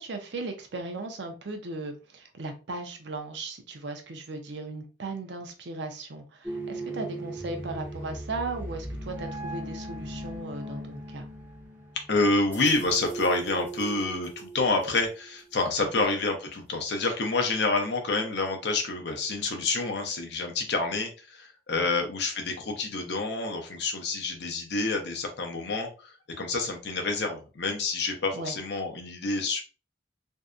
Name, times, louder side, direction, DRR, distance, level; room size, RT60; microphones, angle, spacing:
voice 1, 0.0-11.3 15.8-16.0 21.7-22.0 28.3-28.5, right 3 dB, 65° right, 5 dB, 0.5 m, -37 dB
sound 1, 6.4-15.5, right 2 dB, 10° right, 0.5 m, -38 dB
voice 2, 12.1-29.6, left 3 dB, 60° left, 3 dB, 0.6 m, -28 dB
2.6 x 2.1 x 2.4 m, 0.34 s
head